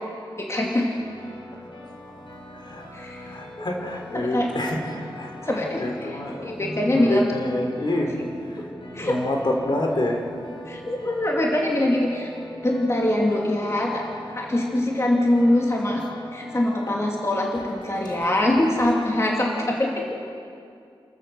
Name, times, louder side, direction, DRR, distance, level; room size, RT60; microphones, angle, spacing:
voice 1, 0.4-0.9 2.9-3.7 4.1-4.5 5.4-7.3 8.9-9.2 10.7-12.3 12.6-14.0 14.4-16.0 16.3-20.0, left 1 dB, 30° left, -1 dB, 2.7 m, -23 dB
sound 1, 1.0-18.9, left 1 dB, 75° left, 4.5 m, -42 dB
voice 2, 2.6-8.6 9.0-10.2 16.9-17.0, left 1 dB, 55° left, 1 dB, 3.6 m, -28 dB
28.5 x 14.0 x 7.0 m, 2.4 s
wide cardioid pair, 70°, 9 cm